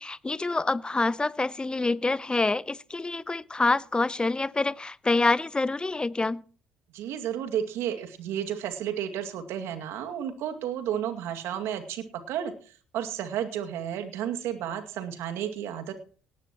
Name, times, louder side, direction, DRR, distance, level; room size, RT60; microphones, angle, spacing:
voice 1, 0.0-6.4, left 3 dB, 20° left, 20 dB, 0.7 m, -26 dB
voice 2, 6.9-16.0, right 9 dB, 70° right, 6 dB, 2.2 m, -32 dB
18.0 x 14.0 x 3.0 m, 0.41 s
hypercardioid pair, 55°, 5 cm